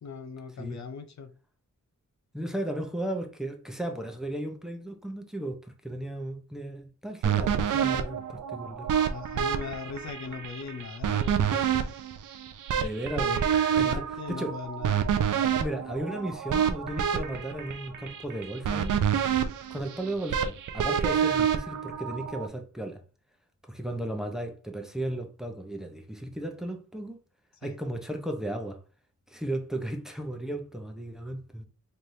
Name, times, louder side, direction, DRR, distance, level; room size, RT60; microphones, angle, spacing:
voice 1, 0.0-1.3 9.1-12.0 13.2-13.4 13.8-15.0 27.6-27.8, left 5 dB, 65° left, 0.6 m, -39 dB
voice 2, 2.3-8.9 12.8-13.4 13.7-14.0 14.3-14.6 15.6-19.0 19.7-23.0 23.7-27.2 27.6-28.8 29.3-31.6, right 1 dB, ahead, 0.8 m, -35 dB
sound 1, 7.2-22.5, right 8 dB, 85° right, 0.5 m, -28 dB
4.3 x 3.3 x 2.7 m
wide cardioid pair, 95°, 31 cm